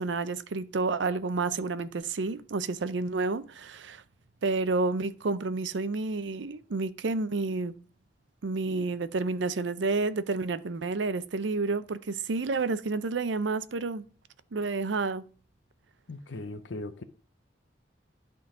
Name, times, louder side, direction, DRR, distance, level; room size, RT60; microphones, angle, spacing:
voice 1, 0.0-4.0 4.4-7.7 8.4-14.0 14.5-15.2, right 3 dB, 80° right, 0.6 m, -30 dB
voice 2, 16.1-17.0, left 2 dB, 80° left, 0.7 m, -38 dB
11.5 x 3.8 x 4.9 m
head